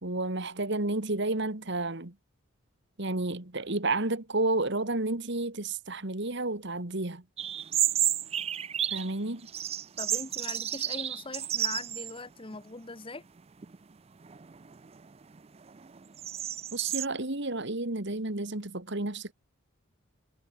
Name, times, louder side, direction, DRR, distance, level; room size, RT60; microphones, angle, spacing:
voice 1, 0.0-2.1 3.0-7.2 8.9-9.5 16.7-19.3, right 2 dB, 55° right, 2.0 m, -31 dB
sound 1, 7.4-9.1 9.5-12.2 12.5-12.6 13.4-13.8 14.2-17.0, right 11 dB, 30° right, 0.4 m, -31 dB
voice 2, 10.0-13.2, left 3 dB, 25° left, 1.1 m, -41 dB
head